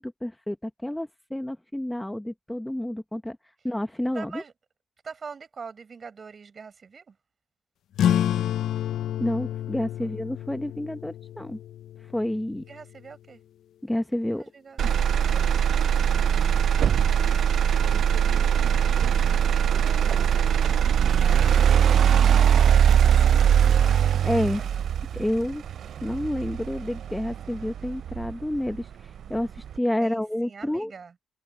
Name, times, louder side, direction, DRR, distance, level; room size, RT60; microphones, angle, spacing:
voice 1, 0.0-3.4 3.6-4.4 9.2-11.6 12.0-12.6 13.8-14.4 24.2-24.6 25.1-25.6 26.0-30.9, left 1 dB, 5° left, 0.9 m, -29 dB
voice 2, 4.1-4.5 5.0-7.2 10.0-10.1 12.6-13.4 14.3-14.9 16.1-16.6 19.8-20.5 21.0-23.3 24.4-24.9 30.0-31.2, right 5 dB, 40° right, 7.2 m, -44 dB
sound 1, 7.9-13.0, left 11 dB, 75° left, 0.5 m, -29 dB
Motor vehicle (road), 14.8-28.8 29.3-29.8, right 8 dB, 65° right, 0.5 m, -21 dB
cardioid pair, 90°, 0 cm